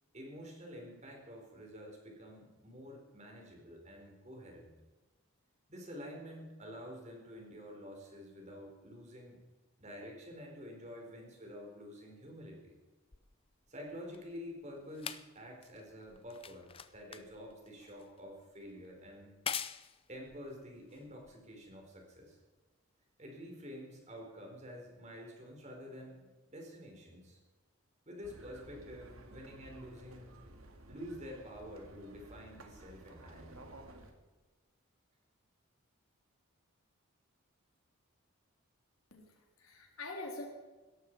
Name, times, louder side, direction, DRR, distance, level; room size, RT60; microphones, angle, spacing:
voice 1, 0.1-4.7 5.7-9.4 9.8-12.8 13.7-19.3 20.1-22.4 23.2-27.4 28.1-30.3 30.9-33.6, equal, 30° right, 1 dB, 4.5 m, -49 dB
sound 1, 13.1-21.7 22.6-22.7, left 8 dB, 25° left, 0.6 m, -46 dB
sound 2, 28.2-34.1, right 1 dB, 75° right, 2.2 m, -54 dB
voice 2, 39.1-40.5, left 2 dB, 80° left, 1 dB, 3.6 m, -45 dB
17.0 x 14.0 x 4.8 m, 1.3 s
head